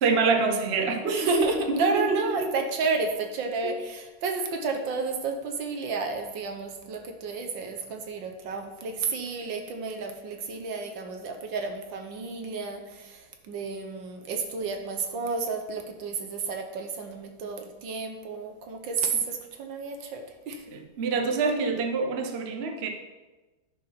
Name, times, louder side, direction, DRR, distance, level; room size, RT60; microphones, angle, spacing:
voice 1, 0.0-1.5 1.8-2.5 3.6-3.7 20.7-22.9, right 4 dB, 50° right, 4 dB, 0.7 m, -26 dB
voice 2, 1.1-20.6, right 4 dB, 65° right, 4 dB, 1.6 m, -31 dB
10.0 x 4.9 x 5.7 m, 1.2 s
omnidirectional pair, 2.3 m